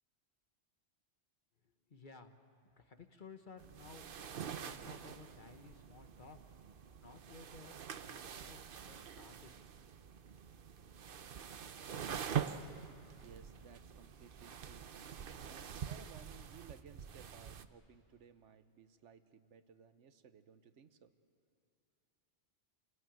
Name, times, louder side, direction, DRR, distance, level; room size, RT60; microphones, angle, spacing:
voice 1, 1.6-2.4 2.8-4.1 4.6-6.4 7.0-9.5, left 4 dB, 45° left, 7 dB, 1.3 m, -56 dB
sound 1, 3.6-17.6, right 8 dB, 55° right, 0.9 m, -45 dB
voice 2, 13.2-14.9 15.4-21.1, right 7 dB, 80° right, 11 dB, 1.2 m, -59 dB
28.0 x 17.5 x 9.0 m, 2.7 s
omnidirectional pair, 1.2 m